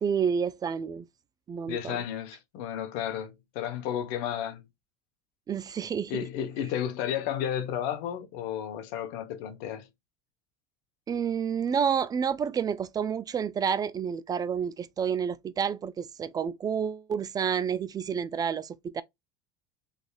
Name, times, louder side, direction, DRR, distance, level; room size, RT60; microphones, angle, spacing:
voice 1, 0.0-1.1 1.5-2.0 5.5-6.1 11.1-19.0, right 7 dB, 25° right, 0.3 m, -29 dB
voice 2, 1.7-4.6 6.1-9.9, left 10 dB, 70° left, 1.1 m, -32 dB
4.0 x 3.4 x 2.4 m
supercardioid pair, 115°, 16 cm